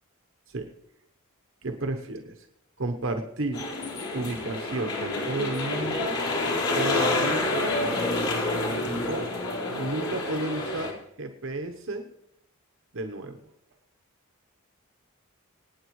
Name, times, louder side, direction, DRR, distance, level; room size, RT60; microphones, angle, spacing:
voice 1, 1.6-2.5 2.8-3.6 4.1-6.2 6.7-7.8 9.1-9.3 9.8-12.1 12.9-13.4, right 2 dB, 60° right, 5 dB, 1.0 m, -32 dB
sound 1, 3.5-10.9, left 2 dB, 75° left, 4.3 m, -28 dB
25.5 x 9.3 x 3.2 m, 0.82 s
head